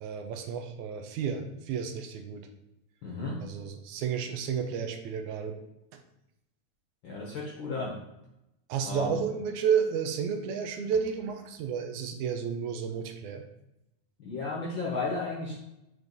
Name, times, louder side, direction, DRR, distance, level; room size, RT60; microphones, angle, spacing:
voice 1, 0.0-2.5 3.4-5.6 5.9-6.0 8.7-13.4, right 7 dB, 80° right, 6 dB, 2.0 m, -31 dB
voice 2, 3.0-3.4 7.0-8.0 8.9-9.2 14.2-15.6, left 3 dB, 65° left, -3 dB, 1.2 m, -34 dB
5.2 x 4.7 x 4.0 m, 0.88 s
omnidirectional pair, 3.5 m